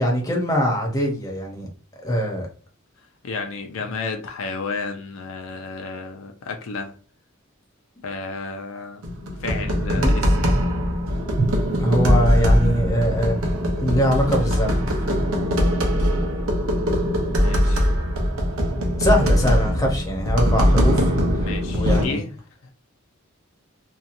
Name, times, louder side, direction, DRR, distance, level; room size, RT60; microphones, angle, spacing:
voice 1, 0.0-1.7 2.0-2.5 10.0-10.1 11.8-13.4 13.8-14.8 19.0-21.1 21.7-22.2, equal, 15° left, 0.7 m, -22 dB
voice 2, 3.2-6.9 8.0-10.7 17.2-17.9 21.4-22.3 22.6-22.7, left 4 dB, 70° left, 0.4 m, -32 dB
sound 1, 9.0-22.1, equal, 90° right, 0.7 m, -21 dB
Drum, 11.4-14.3, right 2 dB, 60° right, 0.8 m, -31 dB
2.8 x 2.3 x 2.5 m
head